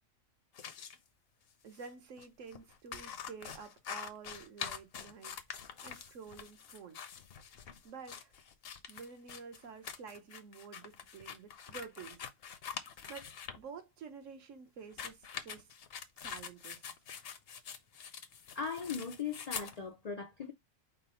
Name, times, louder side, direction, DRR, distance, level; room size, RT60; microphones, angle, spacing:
sound 1, 0.5-1.0 1.7-1.9 2.2-2.3 2.5-13.6 14.8-19.8, left 7 dB, 60° left, 0.7 m, -45 dB
voice 1, 1.6-7.0 7.8-8.3 8.9-12.2 13.1-15.7 16.2-16.9, right 5 dB, 65° right, 1.2 m, -50 dB
voice 2, 18.5-20.5, left 6 dB, 75° left, 0.3 m, -39 dB
5.0 x 2.0 x 4.2 m
omnidirectional pair, 1.4 m